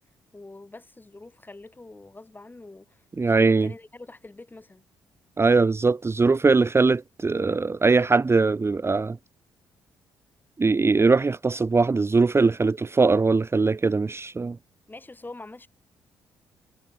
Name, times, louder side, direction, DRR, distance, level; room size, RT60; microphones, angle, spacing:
voice 1, 0.3-4.8 14.9-15.7, left 2 dB, 20° left, 7.9 m, -45 dB
voice 2, 3.2-3.7 5.4-9.2 10.6-14.6, right 4 dB, 30° right, 1.1 m, -21 dB
hypercardioid pair, 45°, 9 cm